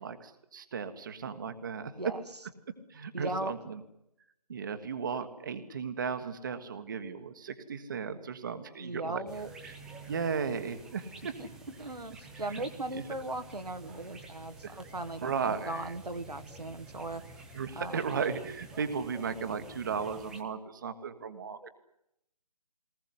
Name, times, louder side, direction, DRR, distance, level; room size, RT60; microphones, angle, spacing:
voice 1, 0.0-2.0 2.9-3.8 4.5-9.2 9.6-9.8 10.1-11.3 12.5-12.6 12.9-13.0 14.6-14.8 15.2-15.9 17.5-21.7, right 6 dB, 30° right, 9 dB, 1.5 m, -35 dB
voice 2, 3.1-3.5 8.8-9.5 11.4-17.2 17.8-18.0 21.6-21.7, right 2 dB, 75° right, 8 dB, 1.7 m, -38 dB
sound 1, 9.3-20.4, right 2 dB, 5° right, 1.0 m, -50 dB
21.5 x 19.5 x 9.7 m, 0.80 s
figure-of-eight pair, 150°, 20 cm